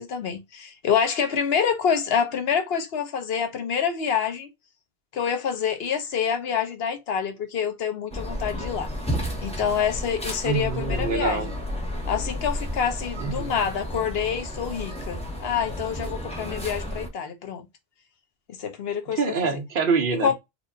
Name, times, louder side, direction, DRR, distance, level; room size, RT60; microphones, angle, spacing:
voice 1, 0.0-4.5 5.1-8.9 9.4-11.5 12.1-17.6 18.6-19.2 20.2-20.3, left 7 dB, 65° left, 1.0 m, -27 dB
sound 1, 8.1-17.1, left 1 dB, 5° left, 1.0 m, -32 dB
voice 2, 10.4-11.5 13.2-13.5 19.1-20.3, right 5 dB, 55° right, 0.8 m, -25 dB
4.4 x 2.5 x 2.6 m
omnidirectional pair, 1.2 m